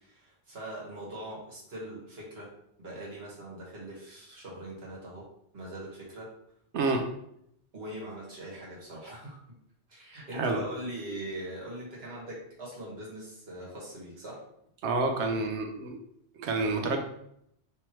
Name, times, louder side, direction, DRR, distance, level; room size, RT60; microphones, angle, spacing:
voice 1, 0.0-2.5 2.8-5.3 5.5-6.3 7.7-9.4 9.9-14.4, right 1 dB, 65° right, -5 dB, 1.8 m, -41 dB
voice 2, 6.7-7.0 10.3-10.6 14.8-16.0 16.4-17.0, right 3 dB, 90° right, 4 dB, 0.9 m, -28 dB
3.4 x 3.0 x 4.4 m, 0.74 s
omnidirectional pair, 1.1 m